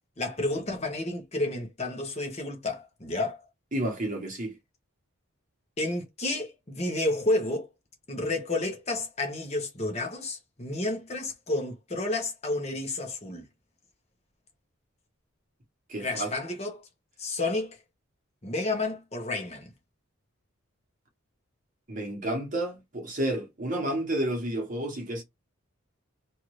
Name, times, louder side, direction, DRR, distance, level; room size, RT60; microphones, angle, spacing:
voice 1, 0.2-3.4 5.8-7.7 8.1-13.4 16.0-16.9 17.2-17.8 18.4-19.7, left 2 dB, 30° left, 0.9 m, -31 dB
voice 2, 3.7-4.5 15.9-16.3 21.9-25.2, right 1 dB, 35° right, 1.0 m, -31 dB
2.7 x 2.5 x 3.1 m
head